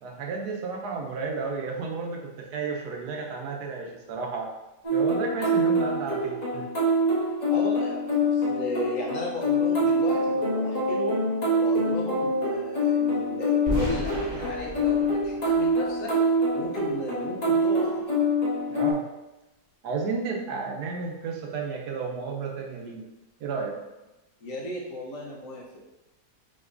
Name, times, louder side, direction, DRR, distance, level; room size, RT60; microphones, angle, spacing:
voice 1, 0.0-4.5 4.9-6.7 18.7-19.0 19.8-23.1 23.4-23.8, right 4 dB, 75° right, 1 dB, 1.2 m, -32 dB
sound 1, 4.8-18.9, equal, 30° left, 1.2 m, -25 dB
voice 2, 7.5-11.3 11.6-16.1 16.5-18.1 24.4-25.8, left 1 dB, 60° left, -3 dB, 1.1 m, -35 dB
sound 2, 13.7-16.6, right 1 dB, 40° right, 0.8 m, -35 dB
6.1 x 2.9 x 2.5 m, 0.99 s
omnidirectional pair, 1.7 m